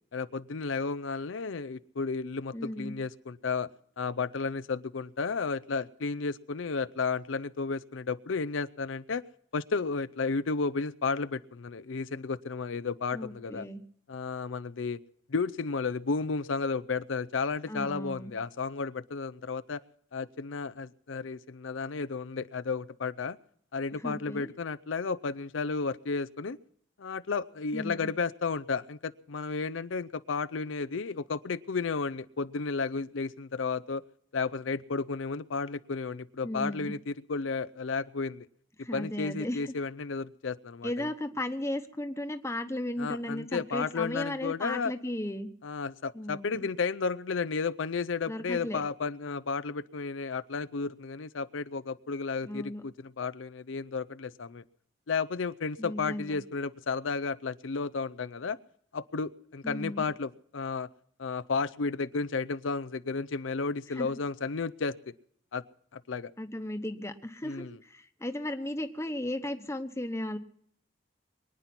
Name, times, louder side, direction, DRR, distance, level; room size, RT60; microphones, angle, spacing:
voice 1, 0.1-3.7 4.0-9.2 9.5-13.7 14.1-15.0 15.3-19.8 20.1-23.4 23.7-26.6 27.0-34.0 34.3-38.5 38.9-40.9 43.0-44.9 45.6-54.6 55.1-58.6 58.9-60.9 61.2-65.1 65.5-65.6 65.9-66.3 67.4-67.8, left 4 dB, 90° left, 14 dB, 0.6 m, -33 dB
voice 2, 2.5-2.9 13.1-13.8 17.7-18.3 24.0-24.5 27.7-28.1 36.4-36.9 38.8-39.7 40.8-45.5 46.1-46.7 48.3-48.8 52.4-52.8 55.8-56.4 59.6-60.0 64.0-64.1 66.4-70.4, left 1 dB, 15° left, 8 dB, 1.0 m, -35 dB
23.5 x 9.7 x 5.9 m, 0.63 s
head